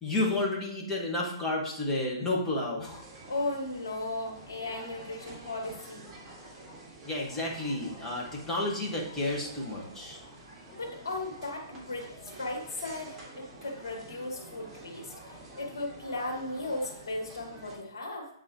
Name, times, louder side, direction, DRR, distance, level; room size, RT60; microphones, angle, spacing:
voice 1, 0.0-3.0 7.0-10.2, left 2 dB, 15° left, -2 dB, 1.7 m, -31 dB
sound 1, 2.9-17.8, right 2 dB, 20° right, 2.0 m, -48 dB
voice 2, 3.3-6.1 10.7-18.3, left 2 dB, 65° left, -1 dB, 2.1 m, -36 dB
8.5 x 4.0 x 3.1 m, 0.68 s
figure-of-eight pair, 125°, 2 cm